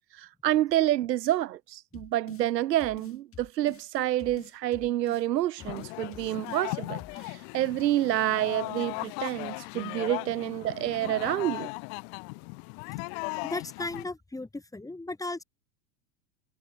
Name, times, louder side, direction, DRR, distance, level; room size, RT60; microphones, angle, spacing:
voice 1, 0.1-11.7, right 13 dB, 75° right, 1.1 m, -28 dB
sound 1, 1.9-2.5 2.8-3.9 4.2-5.3 5.6-6.7 7.0-7.4, left 9 dB, 25° left, 7.7 m, -49 dB
sound 2, 5.6-14.1, left 40 dB or more, 50° left, 1.7 m, -37 dB
voice 2, 13.4-15.4, left 2 dB, 5° left, 3.5 m, -36 dB
hypercardioid pair, 105°, 50 cm